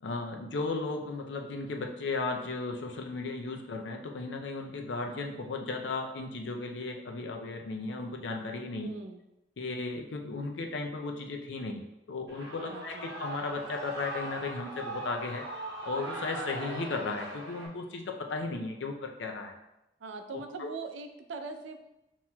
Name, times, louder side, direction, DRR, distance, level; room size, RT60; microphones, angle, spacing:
voice 1, 0.0-8.9 9.6-15.5 15.8-19.6 20.6-20.7, left 3 dB, 75° left, 3 dB, 0.5 m, -35 dB
voice 2, 8.8-9.2 12.7-13.1 20.0-21.8, right 4 dB, 90° right, 6 dB, 0.4 m, -41 dB
Shout / Cheering, 12.3-17.7, right 2 dB, 65° right, 0.8 m, -40 dB
5.6 x 3.0 x 2.2 m, 0.90 s
head